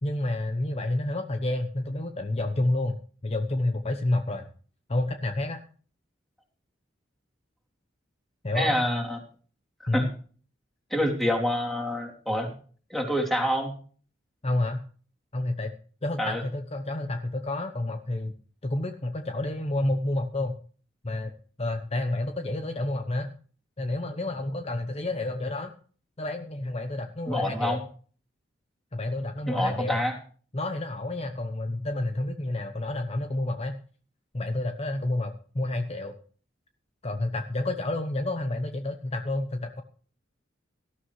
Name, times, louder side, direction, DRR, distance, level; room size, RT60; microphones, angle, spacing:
voice 1, 0.0-3.0 3.2-4.5 4.9-5.6 8.4-8.7 9.9-10.1 14.4-14.8 15.3-15.7 16.0-18.3 18.6-20.5 21.0-21.3 21.6-23.3 23.8-25.7 26.2-27.8 28.9-30.0 30.5-33.8 34.3-36.1 37.0-39.8, left 2 dB, 35° left, 6 dB, 1.0 m, -29 dB
voice 2, 8.5-9.2 9.9-10.1 10.9-12.5 12.9-13.7 16.2-16.4 27.3-27.8 29.5-30.1, equal, ahead, 0 dB, 3.1 m, -27 dB
18.5 x 13.0 x 3.2 m, 0.43 s
head